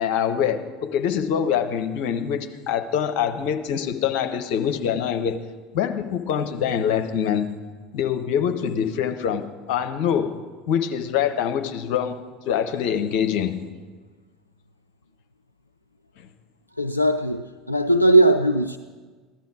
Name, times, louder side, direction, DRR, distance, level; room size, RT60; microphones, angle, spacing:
voice 1, 0.0-5.4 5.7-7.5 7.9-10.4 10.7-13.6 16.2-16.3, left 8 dB, 60° left, 7 dB, 0.9 m, -24 dB
voice 2, 16.8-18.8, right 1 dB, 90° left, 8 dB, 0.3 m, -19 dB
15.5 x 11.5 x 4.8 m, 1.4 s
figure-of-eight pair, 70°, 0 cm